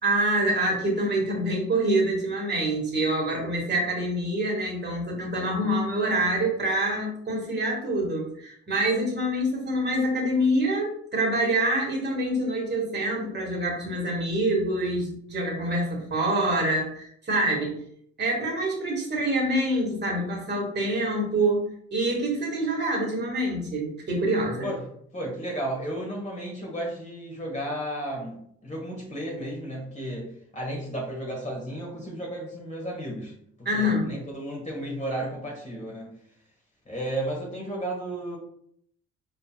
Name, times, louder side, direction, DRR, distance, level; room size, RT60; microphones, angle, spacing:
voice 1, 0.0-17.8 18.2-21.6 21.9-24.7 33.7-34.1, right 1 dB, 35° right, -2 dB, 1.8 m, -26 dB
voice 2, 25.1-33.3 33.7-36.1 36.9-38.4, right 1 dB, 25° left, -2 dB, 1.8 m, -33 dB
5.2 x 3.9 x 2.3 m, 0.67 s
cardioid pair, 90°, 30 cm